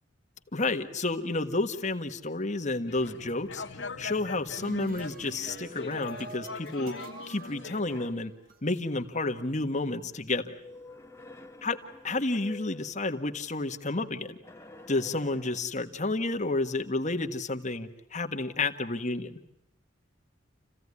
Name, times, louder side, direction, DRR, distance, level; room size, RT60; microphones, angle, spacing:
voice 1, 0.5-3.6 4.0-6.9 7.3-8.3 8.6-10.5 11.6-11.8 12.0-14.4 14.9-19.4, left 2 dB, 40° left, 5 dB, 1.6 m, -30 dB
sound 1, 2.9-7.8, left 4 dB, 65° left, 1.7 m, -42 dB
sound 2, 4.2-8.6, right 2 dB, 50° right, 1.9 m, -45 dB
sound 3, 7.5-8.3 10.5-13.0 14.4-15.8, left 2 dB, 15° left, 1.3 m, -49 dB
29.0 x 16.0 x 9.8 m, 0.87 s
head